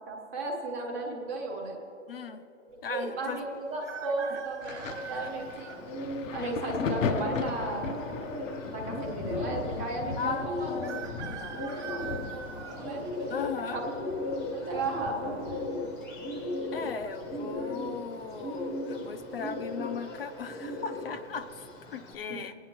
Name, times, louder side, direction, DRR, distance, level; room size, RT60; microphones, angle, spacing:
voice 1, 0.1-1.8 2.9-6.1 6.3-7.9 8.7-10.7 11.6-12.0 12.3-13.0 13.7-13.8 14.5-15.3 22.3-22.4, right 2 dB, 15° right, -1 dB, 0.5 m, -35 dB
voice 2, 2.1-2.4 2.8-3.4 4.3-4.4 5.1-5.3 10.2-11.7 13.3-13.8 16.7-22.6, left 6 dB, 50° left, 9 dB, 0.5 m, -38 dB
sound 1, 3.8-5.8 6.5-6.6 7.7-8.3 8.6-8.7 8.9-9.0 10.8-13.4 14.0-14.4 15.5-15.9 16.1-16.2 16.7-17.1 17.6-17.8, right 8 dB, 65° right, 0.9 m, -42 dB
Thunder, 4.6-18.0 18.2-19.6 20.4-20.6, left 5 dB, 85° left, 0.8 m, -38 dB
Bird, 4.9-22.1, left 1 dB, 20° left, 0.7 m, -37 dB
22.0 x 9.3 x 2.9 m, 2.8 s
hypercardioid pair, 165°, 37 cm